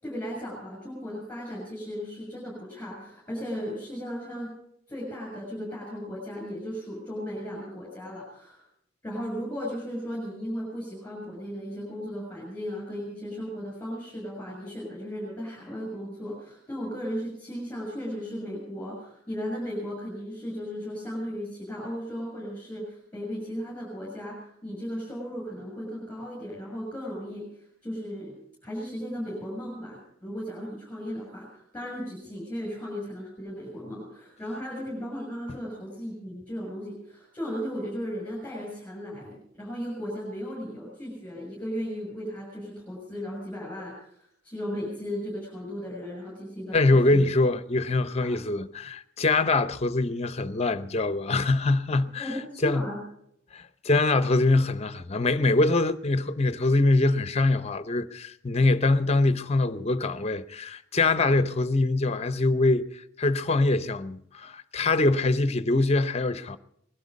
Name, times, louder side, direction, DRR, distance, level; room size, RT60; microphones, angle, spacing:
voice 1, 0.0-4.5 4.9-8.6 9.0-27.5 27.8-28.4 28.6-47.3 48.2-48.3 52.2-53.0, equal, 10° left, 6.8 m, -36 dB
voice 2, 46.7-52.3 52.6-52.9 53.5-66.6, left 2 dB, 35° left, 0.7 m, -24 dB
20.5 x 12.0 x 5.3 m
head